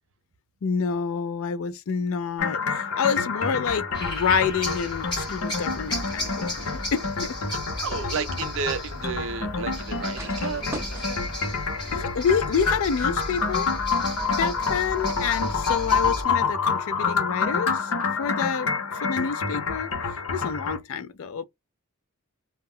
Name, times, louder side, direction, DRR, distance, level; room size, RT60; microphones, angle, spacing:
voice 1, 0.6-7.4 11.9-13.7 14.3-17.9 18.2-19.9 20.3-21.5, left 6 dB, 65° left, 0.4 m, -28 dB
sound 1, 2.4-20.8, left 5 dB, 85° left, 0.8 m, -28 dB
sound 2, 3.9-16.2, left 1 dB, 20° left, 0.9 m, -35 dB
sound 3, 6.2-13.3, right 1 dB, 10° right, 0.6 m, -44 dB
voice 2, 7.5-11.3, right 5 dB, 60° right, 0.5 m, -33 dB
2.2 x 2.0 x 3.6 m
head